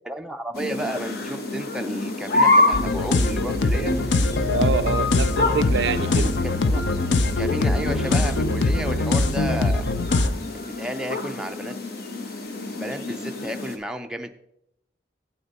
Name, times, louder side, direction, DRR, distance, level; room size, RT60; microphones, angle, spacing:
voice 1, 0.0-3.9 6.0-6.8 7.4-9.9 10.5-11.7 12.5-14.3, equal, 5° right, 4 dB, 0.4 m, -32 dB
sound 1, 0.5-13.8, left 2 dB, 55° left, 1.0 m, -27 dB
sound 2, 2.7-10.3, left 2 dB, 85° left, 0.6 m, -22 dB
voice 2, 4.5-6.3, right 6 dB, 70° right, 17 dB, 0.3 m, -26 dB
8.8 x 7.8 x 4.1 m, 0.79 s
head